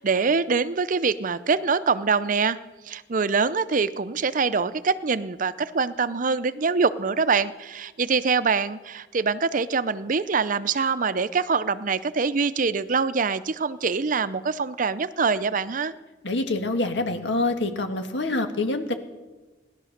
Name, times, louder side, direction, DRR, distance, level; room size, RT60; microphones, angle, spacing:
voice 1, 0.0-2.6 2.8-15.9, right 5 dB, 45° right, 15 dB, 0.6 m, -24 dB
voice 2, 16.2-18.9, left 2 dB, 75° left, 7 dB, 1.7 m, -26 dB
17.5 x 12.0 x 6.6 m, 1.2 s
head